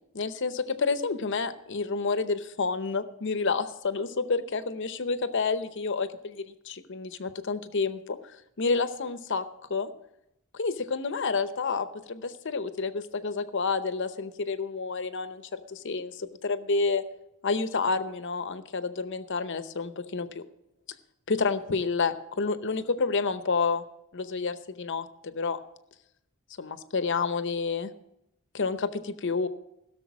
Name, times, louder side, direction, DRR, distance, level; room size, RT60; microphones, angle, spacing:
voice 1, 0.1-8.2 8.6-9.4 9.7-9.9 10.5-17.0 17.4-20.4 21.3-23.8 24.1-25.6 26.6-27.9 28.5-29.5, left 4 dB, 55° left, 12 dB, 0.7 m, -29 dB
16.0 x 6.7 x 6.1 m, 0.83 s
head